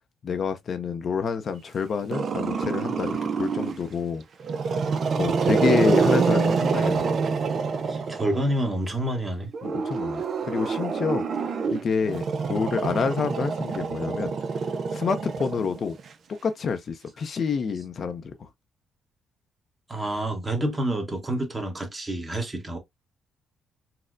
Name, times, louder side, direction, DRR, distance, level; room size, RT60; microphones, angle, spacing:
voice 1, 0.2-4.2 5.2-7.1 9.6-11.2 11.7-14.3 14.9-16.0 16.3-18.5, left 5 dB, 50° left, 0.5 m, -28 dB
Growling, 2.1-3.9 4.4-8.6 9.5-16.1, right 5 dB, 55° right, 0.4 m, -26 dB
voice 2, 7.9-9.5 19.9-22.8, right 1 dB, 20° right, 1.1 m, -28 dB
4.1 x 2.1 x 2.5 m
cardioid pair, 90°, 0 cm